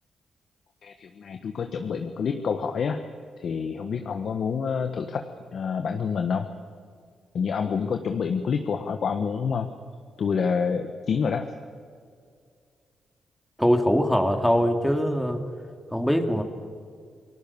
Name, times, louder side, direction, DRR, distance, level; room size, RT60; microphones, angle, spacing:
voice 1, 0.8-3.0 3.4-5.3 5.5-6.5 7.3-9.7 10.2-11.5, left 6 dB, 65° left, 6 dB, 1.4 m, -27 dB
voice 2, 13.6-15.4 15.9-16.4, equal, ahead, 4 dB, 2.8 m, -22 dB
28.5 x 19.0 x 7.2 m, 2.1 s
cardioid pair, 70°, 0 cm